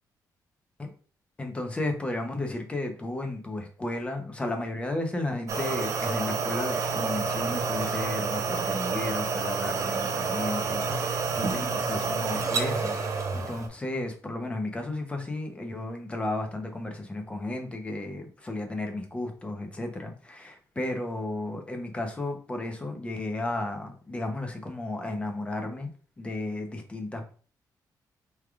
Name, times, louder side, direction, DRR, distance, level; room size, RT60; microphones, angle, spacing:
voice 1, 1.4-27.3, left 2 dB, 15° left, 4 dB, 0.7 m, -33 dB
sound 1, 5.5-13.7, right 4 dB, 45° right, 0.7 m, -29 dB
4.7 x 3.3 x 2.3 m, 0.40 s
wide cardioid pair, 170°, 7 cm